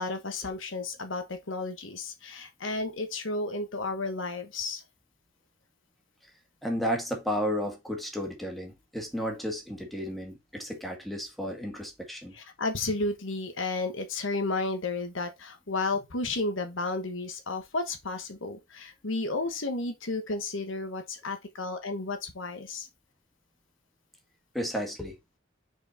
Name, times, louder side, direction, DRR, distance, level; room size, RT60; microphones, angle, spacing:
voice 1, 0.0-4.8 12.3-22.9, left 3 dB, 70° left, 1.2 m, -32 dB
voice 2, 6.6-12.3 24.5-25.2, equal, ahead, 1.9 m, -33 dB
6.3 x 4.5 x 4.4 m
head